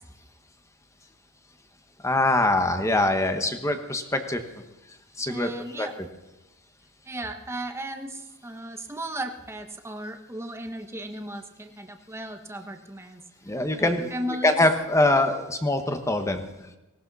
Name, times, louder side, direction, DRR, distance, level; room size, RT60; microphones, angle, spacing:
voice 1, 2.0-4.4 5.2-5.5 5.8-5.9 13.4-14.1 14.4-16.4, left 2 dB, 15° left, 7 dB, 1.3 m, -23 dB
voice 2, 5.3-6.0 7.1-13.2 13.8-14.6, right 1 dB, 10° right, 5 dB, 1.1 m, -36 dB
18.5 x 18.0 x 4.1 m, 0.99 s
head